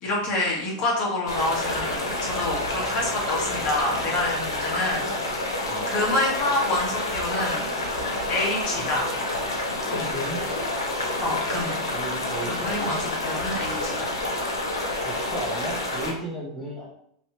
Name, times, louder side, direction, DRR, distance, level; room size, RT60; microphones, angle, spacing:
voice 1, 0.0-5.1 5.4-7.6 8.3-9.1 9.9-10.1 11.2-11.8 12.4-14.1, left 2 dB, 45° left, -2 dB, 1.3 m, -27 dB
sound 1, 1.3-16.1, left 2 dB, 90° left, 0.8 m, -28 dB
voice 2, 10.1-10.4 11.9-13.0 15.0-16.9, right 1 dB, 5° right, -4 dB, 0.9 m, -34 dB
3.2 x 2.8 x 2.9 m, 0.71 s
hypercardioid pair, 105°, 2 cm